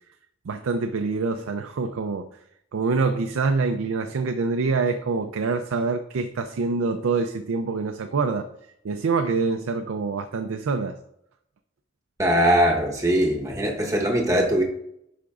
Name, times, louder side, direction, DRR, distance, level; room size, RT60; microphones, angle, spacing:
voice 1, 0.5-2.3 2.7-8.5 8.8-11.0, right 4 dB, 90° right, 0.4 m, -25 dB
voice 2, 12.2-14.6, equal, 15° right, 1.0 m, -21 dB
11.5 x 5.1 x 2.4 m
head